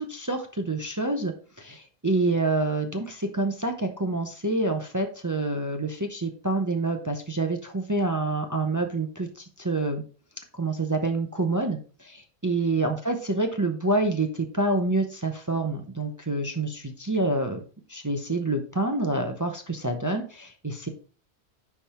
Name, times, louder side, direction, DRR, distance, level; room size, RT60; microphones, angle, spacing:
voice 1, 0.0-10.0 10.5-17.6 17.9-20.9, right 2 dB, 20° right, 5 dB, 0.7 m, -27 dB
10.5 x 3.6 x 4.3 m, 0.38 s
omnidirectional pair, 1.1 m